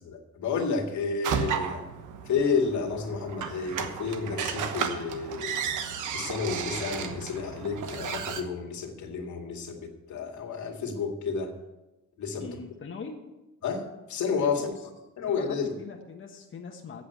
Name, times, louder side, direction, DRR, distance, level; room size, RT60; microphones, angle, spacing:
voice 1, 0.1-1.8 2.2-5.7 6.1-11.6 12.2-12.5 13.6-14.7 15.2-15.7, left 5 dB, 70° left, 2 dB, 2.1 m, -31 dB
sound 1, 1.2-8.4, right 7 dB, 85° right, 1.2 m, -33 dB
voice 2, 12.4-13.2 14.5-14.7 15.3-17.0, left 5 dB, 40° left, 1 dB, 1.4 m, -41 dB
8.3 x 8.3 x 8.1 m, 1.0 s
cardioid pair, 90°, 30 cm